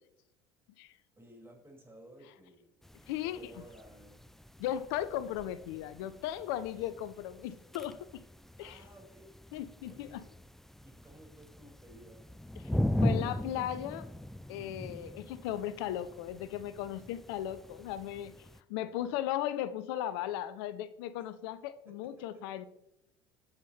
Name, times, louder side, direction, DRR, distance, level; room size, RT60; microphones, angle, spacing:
voice 1, 1.2-4.2 8.6-9.3 9.9-10.2 10.8-12.2 18.8-19.2 21.9-22.4, right 1 dB, 20° right, -1 dB, 5.3 m, -55 dB
sound 1, 2.8-18.6, left 1 dB, ahead, 0.4 m, -39 dB
voice 2, 3.1-3.5 4.6-8.2 8.6-8.8 9.5-10.2 12.6-12.7 13.0-14.1 14.5-22.7, left 12 dB, 65° left, 15 dB, 0.6 m, -37 dB
21.5 x 7.3 x 3.3 m, 0.85 s
hypercardioid pair, 70°, 13 cm